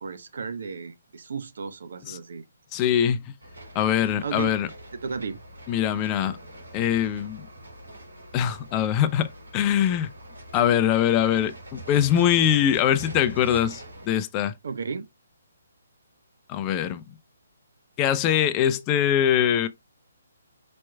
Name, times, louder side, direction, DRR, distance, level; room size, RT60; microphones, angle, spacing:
voice 1, 0.0-2.4 4.2-4.6 5.0-5.4 14.6-15.1, right 5 dB, 65° right, 0.8 m, -34 dB
voice 2, 2.7-3.2 3.7-4.7 5.7-6.4 6.7-7.5 8.3-10.1 10.5-14.5 16.5-17.0 18.0-19.7, left 10 dB, 25° left, 0.5 m, -23 dB
sound 1, 3.4-14.1, right 1 dB, 85° right, 2.9 m, -44 dB
4.5 x 4.3 x 2.3 m
figure-of-eight pair, 145°, 0 cm